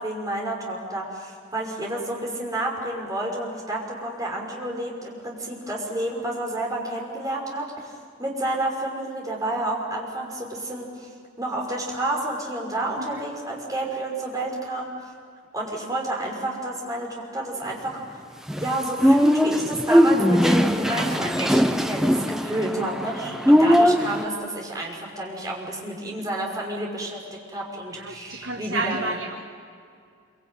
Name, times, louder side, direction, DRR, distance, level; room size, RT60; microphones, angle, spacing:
voice 1, 0.0-7.9 8.2-11.1 11.4-14.9 15.5-18.2 18.6-29.2, right 1 dB, 20° right, -2 dB, 5.6 m, -30 dB
sound 1, 18.5-24.2, equal, ahead, 0.8 m, -20 dB
voice 2, 27.9-29.4, right 2 dB, 90° right, 2 dB, 1.6 m, -31 dB
26.0 x 24.5 x 9.2 m, 2.2 s
head